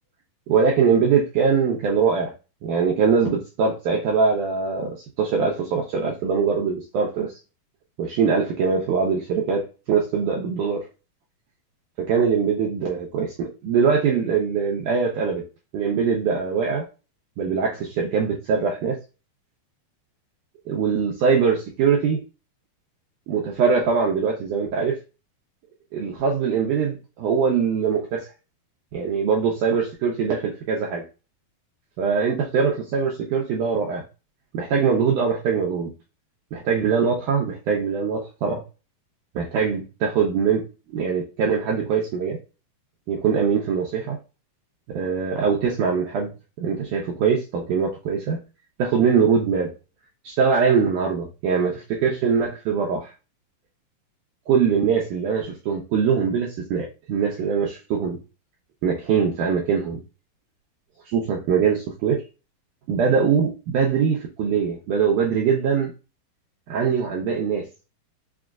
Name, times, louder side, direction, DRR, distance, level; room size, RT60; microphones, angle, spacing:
voice 1, 0.5-2.3 2.6-7.3 8.0-10.8 12.0-15.4 15.7-16.9 17.4-19.0 20.7-22.2 23.3-25.0 25.9-28.3 28.9-31.0 32.0-34.0 34.5-35.9 36.5-38.6 39.4-42.4 43.1-44.2 45.0-46.3 46.6-48.4 48.8-49.7 50.2-53.1 54.5-58.2 58.8-60.0 61.1-62.2 62.9-65.9 66.7-67.7, right 6 dB, 80° right, -1 dB, 1.8 m, -22 dB
6.1 x 2.3 x 2.3 m, 0.31 s
omnidirectional pair, 4.4 m